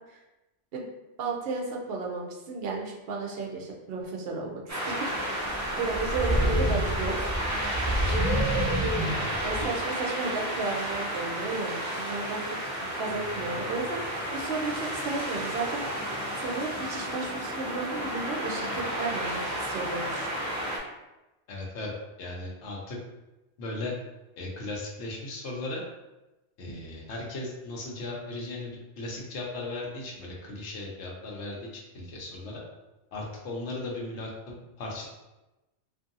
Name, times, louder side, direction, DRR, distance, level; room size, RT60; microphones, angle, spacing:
voice 1, 1.2-5.1 5.8-7.4 9.4-20.3, right 3 dB, 65° right, 0 dB, 0.7 m, -34 dB
sound 1, 4.7-20.8, right 1 dB, 30° right, 0.3 m, -30 dB
voice 2, 9.0-9.7 21.5-21.9 22.2-23.0 23.6-23.9 24.4-25.8 26.6-32.6 33.1-35.1, left 2 dB, 80° left, -2 dB, 1.0 m, -37 dB
2.6 x 2.6 x 2.5 m, 1.0 s
omnidirectional pair, 1.2 m